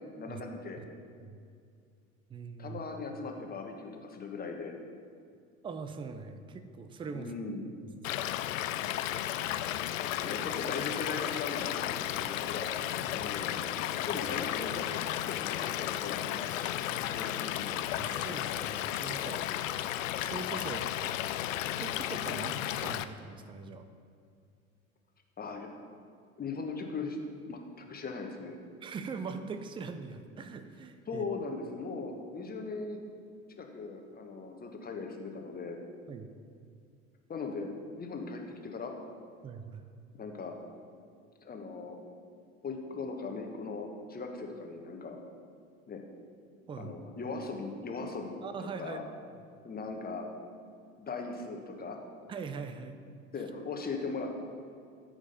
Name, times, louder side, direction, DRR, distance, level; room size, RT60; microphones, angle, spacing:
voice 1, 0.2-0.8 2.6-4.7 7.1-7.7 10.0-12.7 13.1-13.7 14.1-14.9 15.3-16.5 16.8-17.7 22.3-22.5 25.4-25.7 26.4-27.2 27.5-28.6 31.1-33.0 33.6-35.8 37.3-38.9 40.2-40.5 41.4-42.0 42.6-45.2 45.9-46.0 46.8-49.0 49.6-50.3 51.0-52.0 53.3-54.3, left 4 dB, 20° left, 3 dB, 1.3 m, -39 dB
voice 2, 2.3-2.8 5.6-7.3 7.8-8.2 13.0-13.3 17.9-19.6 20.2-20.9 21.7-23.8 28.8-31.3 36.1-36.3 39.4-39.8 46.7-46.9 48.4-49.0 52.3-53.0, right 5 dB, 10° right, 9 dB, 0.5 m, -42 dB
Stream / Liquid, 8.0-23.0, left 12 dB, 65° left, 0.5 m, -34 dB
13.5 x 5.1 x 5.2 m, 2.3 s
figure-of-eight pair, 75°, 42 cm